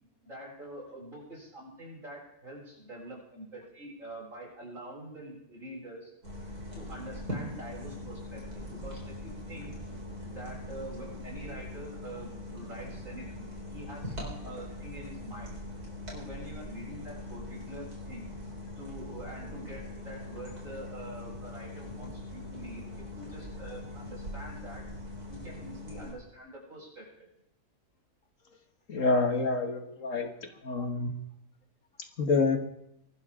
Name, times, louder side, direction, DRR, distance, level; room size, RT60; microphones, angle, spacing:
voice 1, 0.2-6.1 6.7-9.7 10.2-15.5 16.1-18.3 18.8-24.8 25.3-27.3, right 1 dB, 55° right, -4 dB, 8.0 m, -45 dB
sound 1, 6.2-26.1, left 1 dB, 80° right, 4.9 m, -41 dB
voice 2, 28.9-30.3 30.6-31.1 32.2-32.6, left 3 dB, 55° left, 7 dB, 1.7 m, -27 dB
24.0 x 12.5 x 3.7 m, 0.77 s
omnidirectional pair, 1.6 m